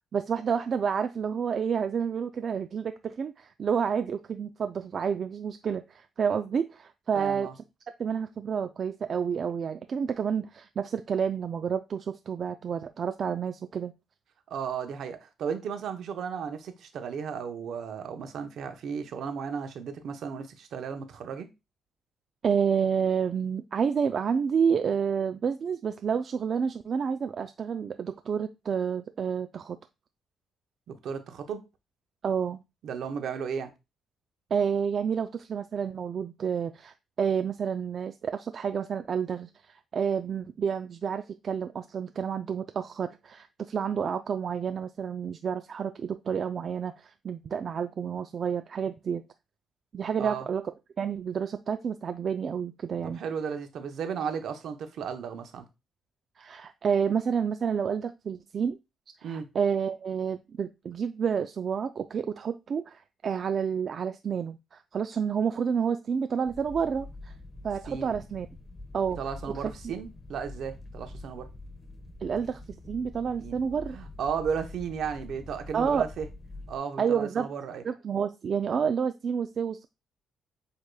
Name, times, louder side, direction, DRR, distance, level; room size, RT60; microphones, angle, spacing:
voice 1, 0.1-7.5 8.0-13.9 22.4-29.8 32.2-32.6 34.5-49.2 49.9-50.6 51.0-53.2 56.4-58.8 59.2-67.3 67.6-68.5 68.9-69.2 72.2-72.6 72.9-74.0 75.7-76.0 77.0-77.5 77.8-79.9, right 7 dB, 50° right, 0.3 m, -29 dB
voice 2, 7.1-7.5 14.5-21.5 30.9-31.6 32.8-33.7 50.2-50.5 53.0-55.7 59.2-59.5 67.9-68.2 69.2-71.5 73.4-73.6 73.9-76.3 76.7-77.8, right 7 dB, 70° right, 0.8 m, -34 dB
sound 1, 66.5-76.8, left 2 dB, 15° left, 1.0 m, -45 dB
7.9 x 2.9 x 2.2 m
cardioid pair, 90°, 0 cm